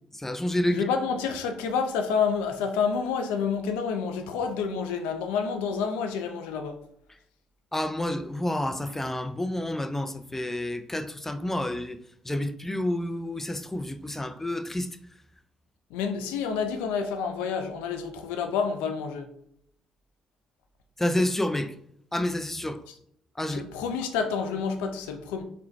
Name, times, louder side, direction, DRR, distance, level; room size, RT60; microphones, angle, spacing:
voice 1, 0.2-0.9 7.7-12.0 12.3-14.9 21.0-21.7 22.1-22.8 23.4-23.6, left 1 dB, 15° left, 0.5 m, -29 dB
voice 2, 0.7-6.8 15.9-19.3 22.9-23.0 23.5-25.4, left 6 dB, 85° left, 0.5 m, -29 dB
3.8 x 2.2 x 4.5 m
hypercardioid pair, 50°, 2 cm